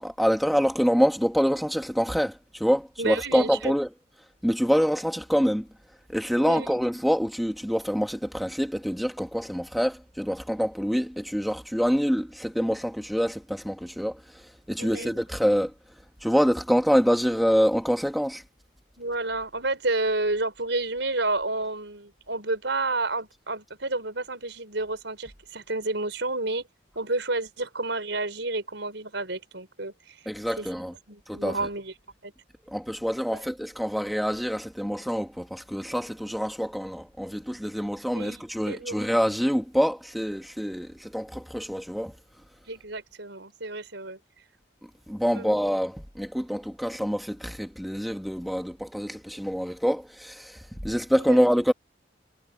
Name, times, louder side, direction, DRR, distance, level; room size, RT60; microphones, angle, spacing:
voice 1, 0.0-3.9 4.4-5.7 6.1-15.7 16.2-18.4 30.2-30.9 31.3-31.6 32.7-42.1 45.1-51.7, equal, ahead, 1.7 m, -26 dB
voice 2, 3.0-3.7 6.4-6.8 14.8-15.2 19.0-26.6 26.9-30.2 30.6-30.7 31.1-31.9 32.2-32.3 33.3-33.4 38.1-39.1 42.7-44.2 45.4-45.6 51.2-51.4, right 2 dB, 70° right, 5.1 m, -30 dB
head